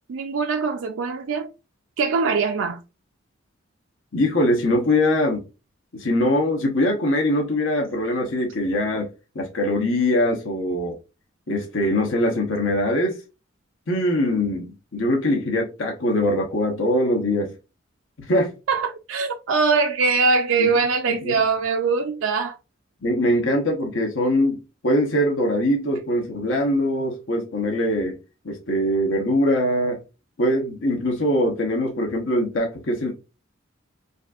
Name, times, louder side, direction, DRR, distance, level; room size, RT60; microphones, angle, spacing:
voice 1, 0.1-1.5 2.0-2.8 18.7-22.6, right 4 dB, 85° right, 0.4 m, -22 dB
voice 2, 4.1-5.4 5.9-9.1 9.3-10.9 11.5-13.2 13.9-14.7 14.9-17.5 18.3-18.5 20.6-20.7 21.1-21.3 23.0-24.6 24.8-28.2 28.4-30.0 30.4-33.1, left 1 dB, 80° left, 0.9 m, -22 dB
5.2 x 2.5 x 2.3 m
head